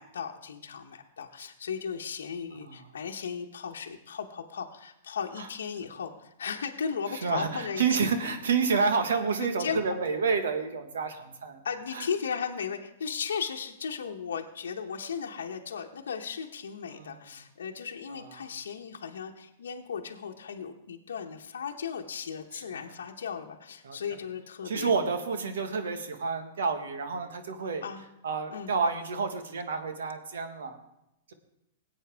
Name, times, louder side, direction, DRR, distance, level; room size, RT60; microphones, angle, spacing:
voice 1, 0.0-7.8 9.4-9.8 11.6-24.9 27.8-28.0 28.5-28.7, left 6 dB, 80° left, 2 dB, 1.0 m, -36 dB
voice 2, 2.5-2.9 5.4-5.5 7.1-11.6 11.9-12.1 16.9-17.2 18.1-18.5 22.5-22.6 23.8-24.0 24.6-27.8 28.2-30.8 31.3-31.4, right 5 dB, 75° right, 7 dB, 1.5 m, -29 dB
19.5 x 8.4 x 3.5 m, 0.85 s
hypercardioid pair, 115°, 0 cm